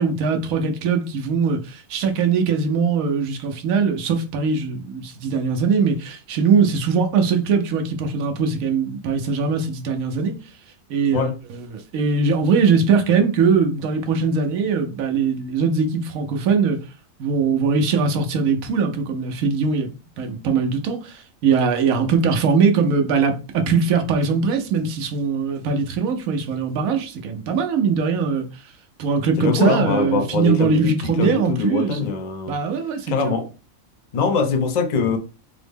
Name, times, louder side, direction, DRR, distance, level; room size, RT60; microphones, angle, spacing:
voice 1, 0.0-10.4 10.9-16.8 17.2-19.9 20.2-28.5 29.0-32.0 32.5-33.3, right 5 dB, 80° right, 1.1 m, -21 dB
voice 2, 29.4-32.6 33.1-33.5 34.1-35.2, left 5 dB, 60° left, 0.4 m, -22 dB
3.7 x 2.0 x 3.4 m
omnidirectional pair, 1.4 m